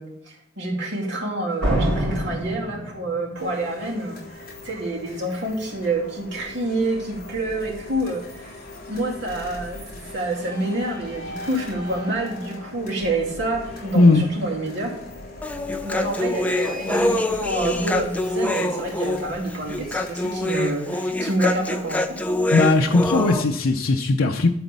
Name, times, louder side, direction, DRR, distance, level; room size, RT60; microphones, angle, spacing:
voice 1, 0.0-8.6 8.9-9.8 10.1-14.9 15.8-22.2, right 2 dB, 55° right, -3 dB, 2.7 m, -28 dB
Slam, 1.6-3.5, right 1 dB, 75° right, 3.4 m, -25 dB
sound 1, 3.3-20.7, left 2 dB, 40° left, 3.6 m, -40 dB
voice 2, 13.9-14.2 22.5-24.5, left 3 dB, 80° left, 2 dB, 0.7 m, -18 dB
Human voice, 15.4-23.4, left 1 dB, 5° left, 0.5 m, -25 dB
11.5 x 4.2 x 6.8 m, 0.72 s
head